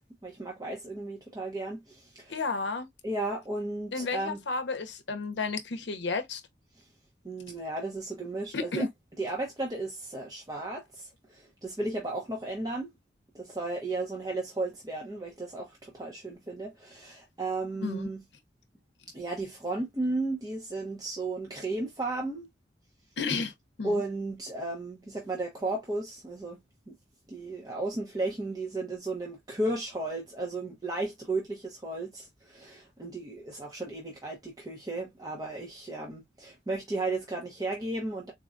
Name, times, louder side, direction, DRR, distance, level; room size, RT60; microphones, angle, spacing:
voice 1, 0.2-2.4 3.0-4.4 7.2-8.8 9.2-12.9 13.3-18.2 19.1-22.5 23.8-26.6 26.9-27.0 27.3-38.3, right 2 dB, 20° right, 0.7 m, -34 dB
voice 2, 2.3-2.9 3.9-6.4 8.5-8.9 17.8-18.1 23.2-23.5 23.8-24.0, left 4 dB, 75° left, 0.7 m, -32 dB
4.1 x 2.2 x 2.4 m
head